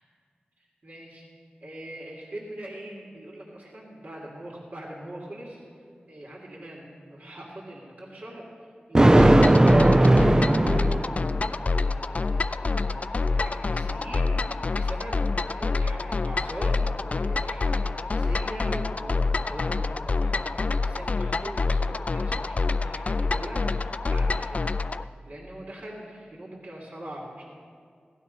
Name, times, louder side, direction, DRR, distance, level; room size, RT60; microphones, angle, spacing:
voice 1, 0.6-1.3 1.6-5.6 6.1-9.4 9.7-24.7 25.3-27.4, right 1 dB, 60° right, -4 dB, 2.8 m, -41 dB
Thunder, 8.9-11.5, right 1 dB, 20° right, 0.4 m, -17 dB
sound 1, 9.2-25.0, left 3 dB, 45° left, 0.4 m, -27 dB
17.5 x 12.0 x 5.5 m, 2.3 s
wide cardioid pair, 90°, 3 cm